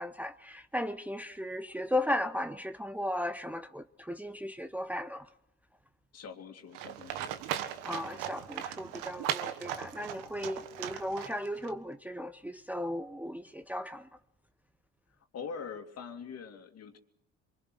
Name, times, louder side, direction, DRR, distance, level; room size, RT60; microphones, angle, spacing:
voice 1, 0.0-5.3 7.8-14.1, left 1 dB, 5° right, 0.9 m, -36 dB
voice 2, 6.1-7.4 15.3-17.0, left 6 dB, 50° left, 2.7 m, -43 dB
Livestock farm animals working animals, 6.7-11.7, right 11 dB, 85° right, 1.5 m, -38 dB
24.5 x 23.0 x 6.4 m
supercardioid pair, 75°, 32 cm